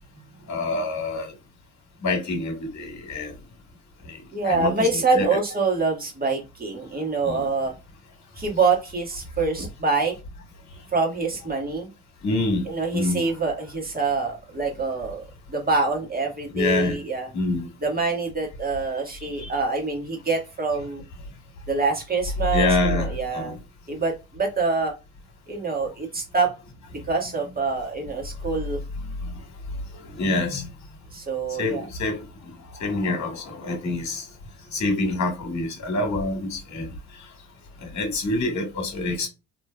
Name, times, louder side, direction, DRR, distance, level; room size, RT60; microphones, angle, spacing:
voice 1, 0.5-1.3 2.0-3.3 4.1-4.2 4.4-5.3 7.2-7.5 12.2-12.7 12.9-13.2 16.5-17.0 17.3-17.7 19.4-19.5 22.5-23.1 23.3-23.6 29.2-29.3 30.1-30.7 31.6-32.2 32.7-34.3 34.7-36.9 37.8-39.3, left 2 dB, 45° left, 1.8 m, -26 dB
voice 2, 4.3-7.7 8.4-10.1 10.9-11.9 12.6-15.2 15.5-17.3 17.8-21.0 21.7-23.6 23.9-24.9 25.5-26.5 27.1-28.8 31.1-31.9, right 4 dB, 25° right, 1.6 m, -25 dB
3.2 x 2.9 x 2.3 m
supercardioid pair, 65°, 38 cm